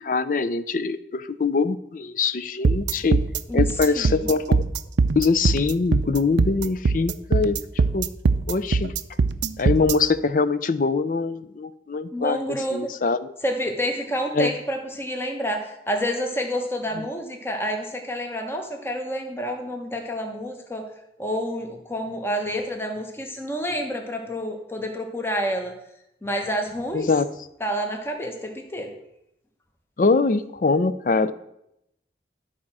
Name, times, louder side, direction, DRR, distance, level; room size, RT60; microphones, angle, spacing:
voice 1, 0.0-3.2 3.5-4.6 5.2-7.6 7.9-8.1 8.5-8.9 9.6-13.3 14.3-14.5 26.9-27.3 30.0-31.3, left 4 dB, 50° left, 14 dB, 0.4 m, -23 dB
sound 1, 2.6-9.9, right 4 dB, 90° right, 0.5 m, -21 dB
voice 2, 3.9-4.3 12.1-12.9 13.4-20.9 21.2-25.7 26.2-27.1 27.6-28.9, equal, 15° left, 3 dB, 1.0 m, -28 dB
12.0 x 4.3 x 6.0 m, 0.80 s
head